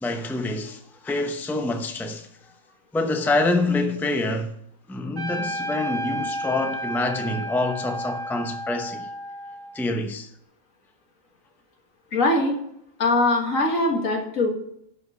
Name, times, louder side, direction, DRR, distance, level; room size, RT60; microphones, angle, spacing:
voice 1, 0.0-2.5 2.9-4.6 4.9-9.1 9.7-10.3, left 2 dB, ahead, 0.7 m, -26 dB
Trumpet, 5.2-9.9, equal, 20° right, 1.2 m, -32 dB
voice 2, 12.1-12.6 13.0-14.5, left 2 dB, 80° left, 2.1 m, -21 dB
11.0 x 5.7 x 5.6 m
omnidirectional pair, 1.4 m